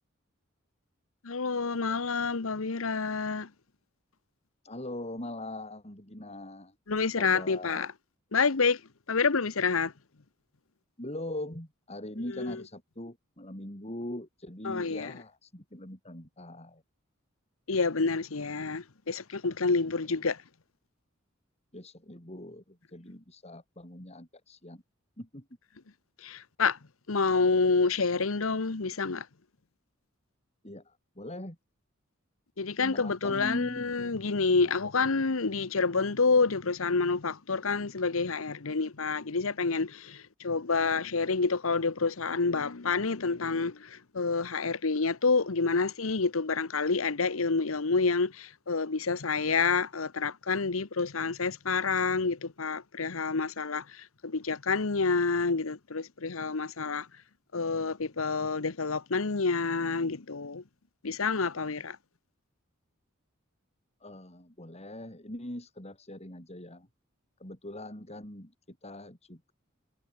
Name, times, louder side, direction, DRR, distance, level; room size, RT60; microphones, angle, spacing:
voice 1, 1.2-3.5 6.9-7.9 8.3-8.8 9.1-9.9 12.3-12.6 14.6-15.1 17.7-20.4 26.2-26.8 27.1-29.3 32.6-57.1 57.5-60.6 61.0-62.0, left 4 dB, 85° left, 1.1 m, -28 dB
voice 2, 4.6-6.7 7.1-7.9 11.0-16.8 19.8-19.9 21.7-24.8 25.2-25.5 30.6-31.6 32.8-33.9 64.0-66.9 67.4-69.5, left 1 dB, 30° left, 5.7 m, -41 dB
head